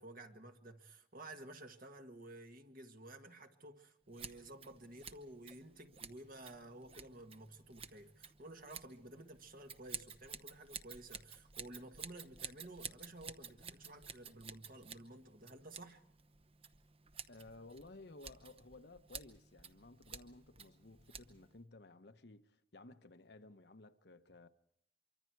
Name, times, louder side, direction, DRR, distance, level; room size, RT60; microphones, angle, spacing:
voice 1, 0.0-16.0, right 1 dB, 50° right, 1.7 m, -53 dB
Scissors, 4.1-21.6, right 6 dB, 30° right, 0.9 m, -52 dB
voice 2, 17.3-24.5, left 2 dB, 60° left, 1.0 m, -56 dB
25.0 x 24.5 x 4.6 m
head